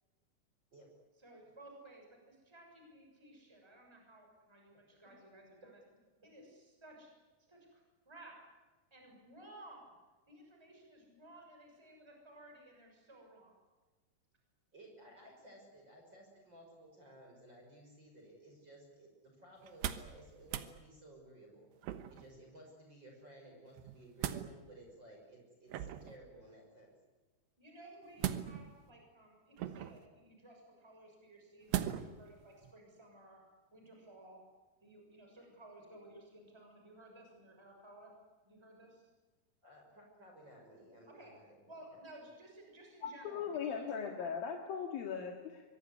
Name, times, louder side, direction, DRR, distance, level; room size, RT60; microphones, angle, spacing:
voice 1, 1.2-5.8 6.2-7.1 7.4-8.4 8.9-9.9 10.3-13.5 27.6-33.4 33.7-34.4 34.8-38.1 38.4-39.1 41.1-41.3 41.6-44.3, right 1 dB, 5° right, 2 dB, 6.5 m, -56 dB
voice 2, 14.7-21.7 22.1-26.9 39.6-42.0, right 1 dB, 25° right, 1 dB, 6.5 m, -57 dB
sound 1, 19.6-20.2 20.4-20.7 21.8-22.3 23.8-24.5 25.7-26.2 28.2-28.8 29.6-30.1 31.7-32.2 32.6-32.7, right 11 dB, 85° right, 3.4 m, -38 dB
voice 3, 43.0-45.6, left 7 dB, 65° left, 2 dB, 3.6 m, -39 dB
25.0 x 23.0 x 9.7 m, 1.2 s
omnidirectional pair, 4.8 m